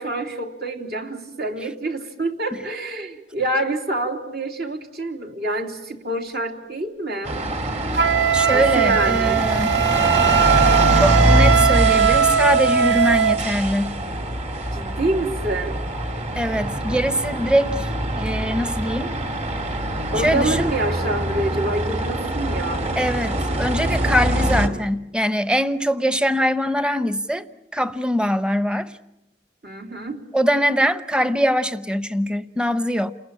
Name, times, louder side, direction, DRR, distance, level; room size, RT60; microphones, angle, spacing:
voice 1, 0.0-7.4 8.5-9.4 14.7-15.8 20.1-22.9 29.6-30.2, right 2 dB, 65° right, 3.2 m, -26 dB
sound 1, 7.3-24.7, right 1 dB, 40° right, 2.6 m, -24 dB
Wind instrument woodwind instrument, 7.9-13.4, right 8 dB, 80° right, 1.2 m, -19 dB
voice 2, 8.3-9.7 10.9-13.9 16.4-17.9 18.2-19.2 20.2-20.7 23.0-27.5 27.7-28.9 30.3-33.1, equal, 5° right, 0.9 m, -22 dB
29.5 x 20.5 x 8.9 m
head